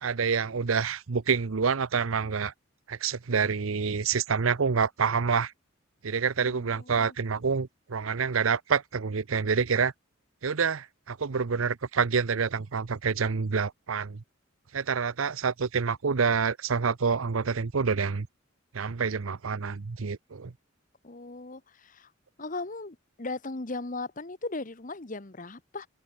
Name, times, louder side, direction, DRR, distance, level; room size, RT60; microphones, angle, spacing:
voice 1, 0.0-2.5 2.9-5.5 6.0-9.9 10.4-14.2 14.7-18.3 18.7-20.5, right 5 dB, 85° right, 0.7 m, -27 dB
voice 2, 6.4-7.1 21.0-22.1 22.4-25.9, left 3 dB, 40° left, 1.2 m, -38 dB
head